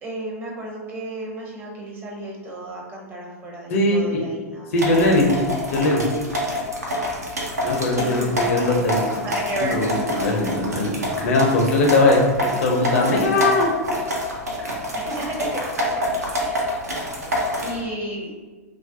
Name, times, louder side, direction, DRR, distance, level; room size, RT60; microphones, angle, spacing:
voice 1, 0.0-4.7 8.0-8.7 9.1-9.9 14.9-16.0 16.4-16.7 17.6-18.3, right 1 dB, 25° right, -2 dB, 0.6 m, -33 dB
voice 2, 3.7-4.0 4.7-5.3 5.7-6.0 7.6-9.0 9.6-13.7, left 2 dB, 55° left, 1 dB, 0.5 m, -20 dB
sound 1, 4.8-17.8, equal, 80° right, 0.6 m, -27 dB
2.3 x 2.1 x 2.5 m, 1.3 s
figure-of-eight pair, 100°, 9 cm